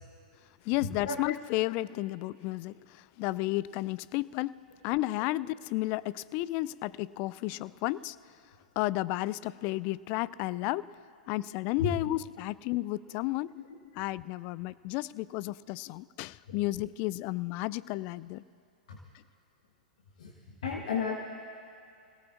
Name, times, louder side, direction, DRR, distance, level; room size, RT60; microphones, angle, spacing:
voice 1, 0.7-2.7 3.2-4.5 4.8-8.2 8.8-10.9 11.3-13.5 14.0-18.4, left 18 dB, 40° left, 20 dB, 0.3 m, -32 dB
voice 2, 20.6-21.1, left 5 dB, 60° left, -1 dB, 1.5 m, -32 dB
30.0 x 17.5 x 2.6 m, 2.4 s
figure-of-eight pair, 100°, 4 cm